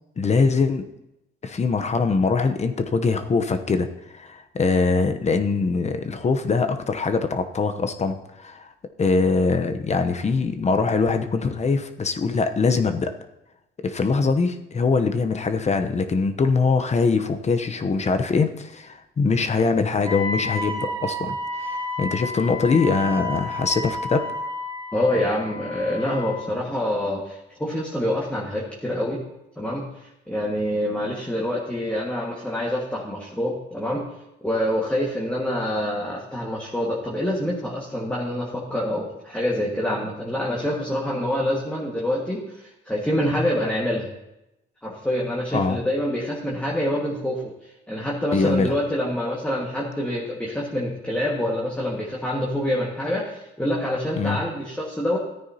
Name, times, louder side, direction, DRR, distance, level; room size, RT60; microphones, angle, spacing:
voice 1, 0.2-0.9 1.4-3.9 4.1-8.7 9.0-13.1 13.8-24.2 45.5-45.8 48.3-48.7 54.2-54.4, left 4 dB, 35° left, 8 dB, 0.8 m, -22 dB
Wind instrument woodwind instrument, 20.0-26.5, left 1 dB, 25° right, 2.0 m, -31 dB
voice 2, 24.9-29.2 29.6-29.8 30.3-34.0 34.4-44.1 44.8-47.5 47.9-55.2, left 1 dB, 5° left, -3 dB, 1.7 m, -26 dB
14.0 x 9.3 x 2.8 m, 0.90 s
cardioid pair, 90°, 20 cm